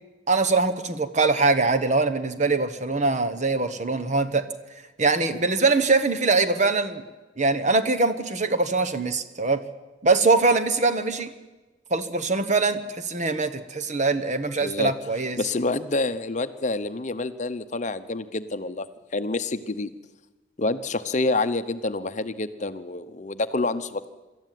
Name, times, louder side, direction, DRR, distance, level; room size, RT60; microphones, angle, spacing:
voice 1, 0.3-4.4 5.0-7.0 7.4-9.6 10.0-11.3 11.9-15.4, right 3 dB, 40° right, 11 dB, 1.2 m, -23 dB
voice 2, 14.6-14.9 15.4-18.9 19.1-19.9 20.6-24.1, left 2 dB, 40° left, 11 dB, 0.8 m, -27 dB
25.0 x 13.5 x 9.2 m, 1.2 s
head